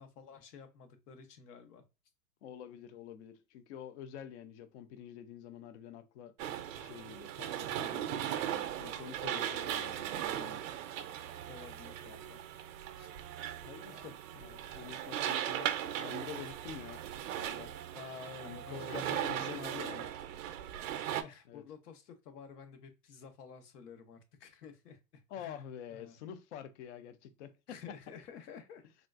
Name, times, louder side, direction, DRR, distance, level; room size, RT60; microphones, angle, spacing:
voice 1, 0.0-1.8 9.2-9.7 11.5-12.4 13.0-13.1 13.8-14.2 17.9-20.0 21.2-25.6 25.9-26.2 27.7-28.8, left 6 dB, 65° left, 1.0 m, -51 dB
voice 2, 2.4-6.3 6.8-8.3 8.8-10.6 13.6-17.0 17.4-17.7 18.4-20.1 21.5-21.6 25.3-27.8, left 9 dB, 45° left, 0.5 m, -47 dB
sound 1, 6.4-21.2, right 11 dB, 55° right, 0.5 m, -38 dB
3.6 x 2.3 x 2.4 m
hypercardioid pair, 130°, 50 cm